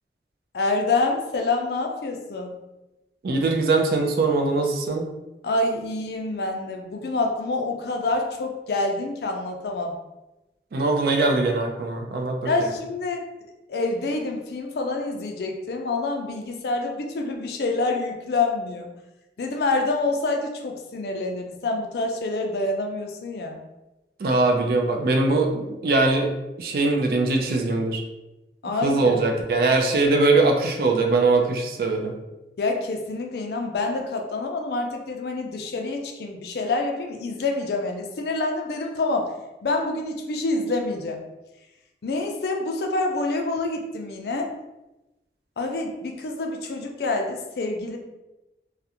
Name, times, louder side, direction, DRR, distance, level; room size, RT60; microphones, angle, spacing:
voice 1, 0.5-2.6 5.4-10.0 12.5-13.2 13.7-18.9 19.4-23.6 28.6-29.2 32.6-39.3 39.6-41.2 42.0-44.5 45.6-48.0, left 3 dB, 65° left, 2 dB, 0.4 m, -27 dB
voice 2, 3.2-5.0 10.7-12.5 24.2-26.3 26.6-28.0 28.8-32.1, right 3 dB, 55° right, 3 dB, 0.3 m, -21 dB
2.4 x 2.1 x 2.8 m, 0.98 s
head